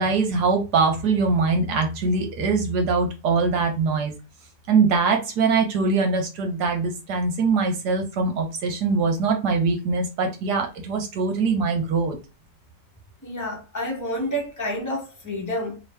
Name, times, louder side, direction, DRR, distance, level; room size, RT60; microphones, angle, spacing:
voice 1, 0.0-4.1 4.7-12.2, right 4 dB, 70° right, 1.3 m, -22 dB
voice 2, 13.2-15.8, equal, 15° left, 0.9 m, -29 dB
3.0 x 2.9 x 3.3 m
omnidirectional pair, 1.8 m